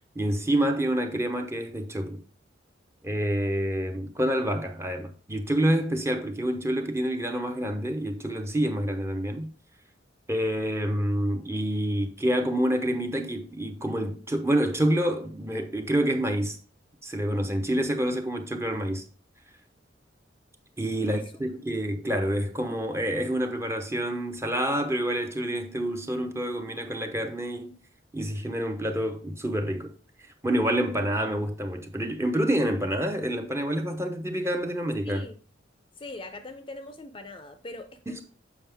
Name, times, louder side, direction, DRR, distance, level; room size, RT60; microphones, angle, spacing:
voice 1, 0.2-2.2 3.0-9.5 10.3-16.6 17.0-19.0 20.8-27.8 28.1-29.9 30.4-35.2 38.1-38.2, right 1 dB, 15° right, 0.7 m, -27 dB
voice 2, 35.0-35.4 36.0-38.2, left 2 dB, 30° left, 0.6 m, -42 dB
7.3 x 5.2 x 3.4 m
head